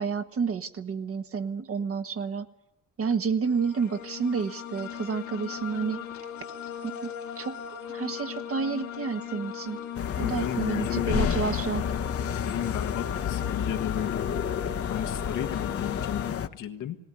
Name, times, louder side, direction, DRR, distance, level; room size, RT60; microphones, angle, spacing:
voice 1, 0.0-2.5 3.0-6.0 6.8-9.8 10.2-11.9, right 5 dB, 50° right, 8 dB, 1.4 m, -30 dB
sound 1, 3.4-16.3, left 9 dB, 70° left, 1.7 m, -38 dB
sound 2, 9.9-16.5, left 8 dB, 50° left, 1.0 m, -30 dB
voice 2, 10.2-11.3 12.4-14.3 14.9-17.0, left 10 dB, 85° left, 5 dB, 1.7 m, -33 dB
19.0 x 18.5 x 9.9 m, 0.83 s
cardioid pair, 90°, 30 cm